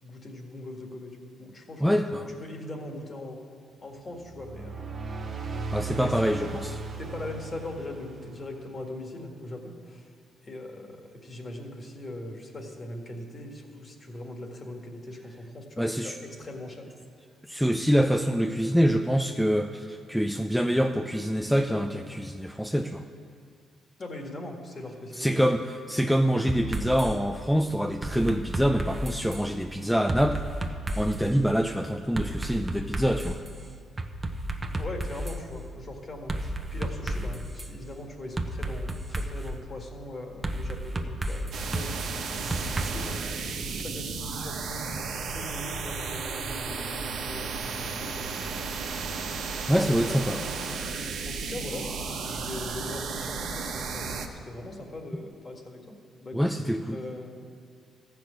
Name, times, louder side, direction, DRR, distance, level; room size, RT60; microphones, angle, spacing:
voice 1, 0.0-1.8 2.3-3.5 3.8-5.0 6.0-6.2 7.0-10.1 10.4-16.9 24.0-25.4 34.7-49.1 49.7-50.5 51.2-57.4, left 1 dB, 35° left, 2 dB, 1.8 m, -41 dB
voice 2, 1.8-2.3 5.7-6.8 15.8-16.2 17.5-23.0 25.2-25.6 25.9-33.4 49.7-50.4 56.3-57.0, equal, ahead, 5 dB, 0.4 m, -25 dB
sound 1, 4.2-8.9, right 3 dB, 45° right, 1.5 m, -37 dB
sound 2, 26.5-27.1 28.0-29.5 30.1-31.3 32.2-33.5 34.0-35.4 36.3-37.7 38.4-39.5 40.4-42.9, right 1 dB, 25° right, 0.9 m, -32 dB
sound 3, 41.5-54.3, right 4 dB, 70° right, 1.1 m, -34 dB
13.5 x 6.0 x 8.4 m, 2.2 s
cardioid pair, 90°, 0 cm